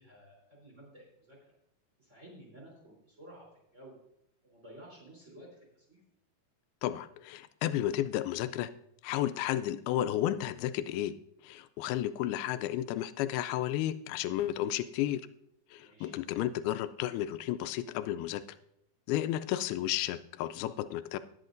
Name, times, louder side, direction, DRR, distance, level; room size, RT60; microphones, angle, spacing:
voice 1, 0.0-1.4 2.0-3.4 3.7-4.0 4.4-6.0 15.7-16.1, right 1 dB, 20° right, -4 dB, 3.4 m, -53 dB
voice 2, 6.8-8.7 9.0-11.1 11.4-15.2 15.7-18.4 19.1-21.2, left 12 dB, 90° left, 13 dB, 2.4 m, -32 dB
18.5 x 8.3 x 2.6 m, 0.76 s
omnidirectional pair, 4.3 m